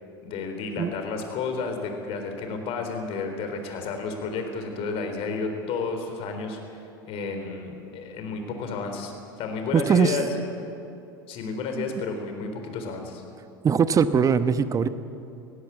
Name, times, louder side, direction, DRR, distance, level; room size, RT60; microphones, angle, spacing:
voice 1, 0.2-6.8 7.0-9.1 9.4-10.4 11.3-13.2, left 4 dB, 50° left, 5 dB, 3.9 m, -31 dB
voice 2, 9.7-10.2 11.8-11.9 13.6-14.9, right 6 dB, 25° right, 12 dB, 1.0 m, -21 dB
18.5 x 16.5 x 8.7 m, 2.7 s
hypercardioid pair, 85°, 13 cm